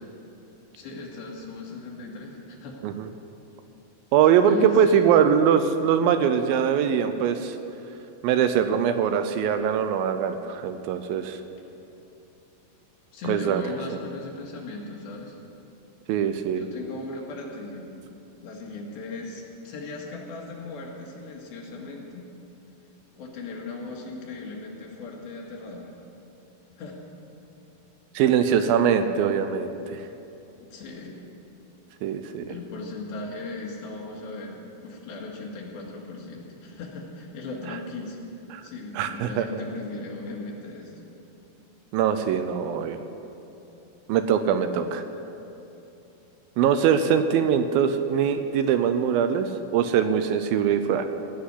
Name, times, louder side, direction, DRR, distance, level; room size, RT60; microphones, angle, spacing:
voice 1, 0.7-2.8 4.4-5.1 13.1-15.4 16.5-17.9 18.4-22.3 23.2-26.0 26.8-27.0 30.6-31.2 32.5-38.2 38.6-40.9, left 3 dB, 75° left, -2 dB, 3.7 m, -37 dB
voice 2, 4.1-7.6 8.2-11.4 13.3-13.6 16.1-16.7 28.2-30.0 32.0-32.5 38.5-38.6 39.0-39.5 41.9-43.0 44.1-45.0 46.6-51.1, right 8 dB, 80° right, 9 dB, 2.3 m, -22 dB
16.5 x 6.1 x 9.6 m, 2.9 s
omnidirectional pair, 4.4 m